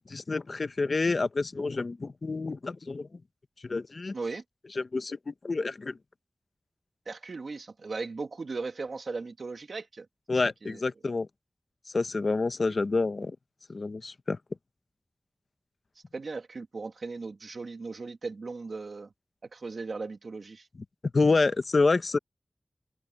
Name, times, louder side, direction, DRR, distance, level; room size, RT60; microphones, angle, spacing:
voice 1, 0.0-3.2 3.6-4.2 4.8-6.0 10.3-11.3 11.9-13.4 13.7-14.4 21.1-22.2, left 3 dB, 65° left, 1.0 m, -28 dB
voice 2, 7.1-10.1 10.4-10.8 16.1-19.1 19.5-20.7, right 4 dB, 80° right, 2.2 m, -37 dB
open air
wide cardioid pair, 70°, 0 cm